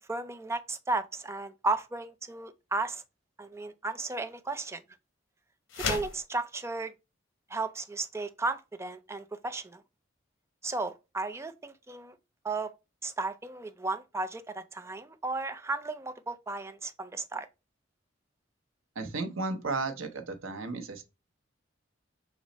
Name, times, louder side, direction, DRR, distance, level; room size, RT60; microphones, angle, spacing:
voice 1, 0.0-3.0 3.4-4.8 5.8-6.9 7.5-9.8 10.6-12.2 12.4-12.7 13.0-17.5, right 3 dB, 15° right, 0.4 m, -34 dB
sound 1, 5.7-6.2, left 5 dB, 85° left, 0.9 m, -32 dB
voice 2, 19.0-21.0, right 3 dB, 90° right, 0.8 m, -34 dB
6.1 x 2.1 x 4.0 m
head